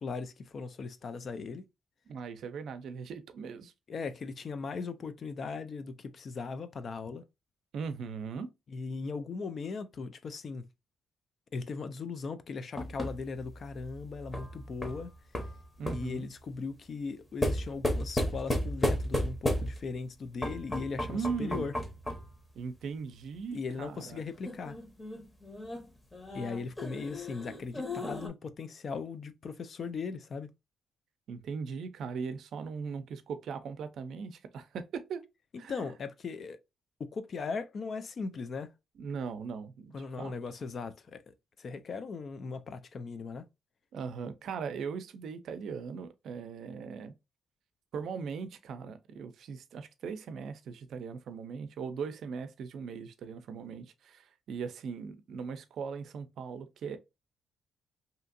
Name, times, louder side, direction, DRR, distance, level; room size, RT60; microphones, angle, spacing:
voice 1, 0.0-1.6 3.9-7.2 8.7-10.6 11.5-15.1 15.8-21.7 23.5-24.8 26.3-30.5 35.7-36.6 37.0-38.7 39.9-43.5, left 4 dB, 50° left, 0.4 m, -38 dB
voice 2, 2.1-3.7 7.7-8.5 15.8-16.3 21.1-21.7 22.5-24.2 31.3-35.3 35.6-35.9 39.0-40.3 43.9-47.1 47.9-57.0, right 5 dB, 70° right, 0.4 m, -39 dB
sound 1, 12.8-16.2 17.4-20.0 20.4-22.4 24.5-28.3, left 1 dB, 20° left, 0.7 m, -34 dB
2.7 x 2.5 x 2.5 m
cardioid pair, 90°, 0 cm